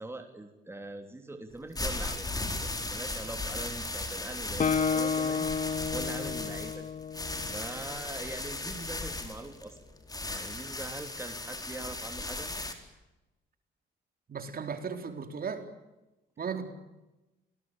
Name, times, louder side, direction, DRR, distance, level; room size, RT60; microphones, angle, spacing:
voice 1, 0.0-2.3 2.6-5.5 5.9-6.8 7.5-9.8 10.3-12.5, right 2 dB, 10° right, 5 dB, 3.2 m, -42 dB
sound 1, 1.5-12.7, left 2 dB, 20° left, 4.3 m, -37 dB
Guitar, 4.6-8.3, left 6 dB, 40° left, 1.7 m, -31 dB
voice 2, 14.3-15.7 16.4-16.7, right 6 dB, 50° right, 7 dB, 4.1 m, -36 dB
26.0 x 20.0 x 9.1 m, 1.0 s
cardioid pair, 90°, 20 cm